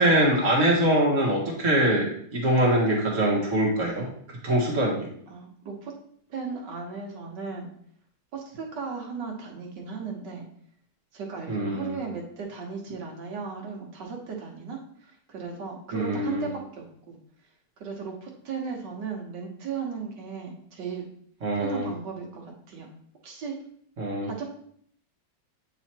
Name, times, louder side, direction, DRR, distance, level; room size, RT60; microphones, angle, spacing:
voice 1, 0.0-4.1 4.4-5.1 11.5-11.9 15.9-16.5 21.4-21.9 24.0-24.3, right 1 dB, 45° right, -2 dB, 1.8 m, -23 dB
voice 2, 5.3-5.9 6.3-7.7 8.3-10.5 11.1-17.2 17.8-21.1 21.6-22.9 23.2-23.5 24.2-24.4, right 5 dB, 80° right, 0 dB, 1.8 m, -36 dB
8.7 x 3.0 x 4.4 m, 0.64 s
omnidirectional pair, 1.9 m